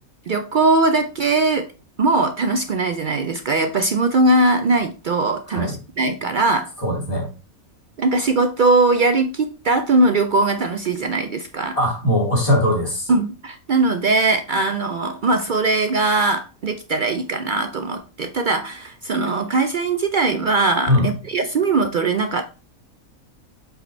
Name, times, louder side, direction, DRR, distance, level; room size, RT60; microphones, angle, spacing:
voice 1, 0.3-1.7 2.0-6.7 8.0-11.8 13.1-22.4, right 3 dB, 75° right, 0.4 m, -20 dB
voice 2, 6.8-7.3 11.8-13.1 20.9-21.1, left 1 dB, 25° left, 2.4 m, -20 dB
7.6 x 5.1 x 3.2 m
omnidirectional pair, 1.5 m